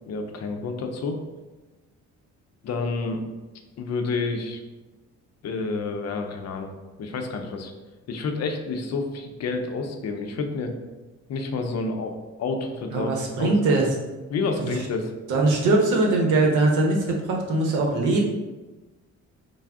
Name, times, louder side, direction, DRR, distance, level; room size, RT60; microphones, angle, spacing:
voice 1, 0.1-1.2 2.6-3.2 3.8-4.6 5.4-6.7 7.0-7.7 8.1-10.7 11.3-12.1 12.4-13.1 13.4-13.5 14.3-15.1, left 4 dB, 60° left, 4 dB, 0.5 m, -29 dB
voice 2, 12.9-13.9 14.6-14.8 15.3-18.2, right 2 dB, 80° right, 0 dB, 0.7 m, -21 dB
3.3 x 2.0 x 3.5 m, 1.2 s
cardioid pair, 90°, 30 cm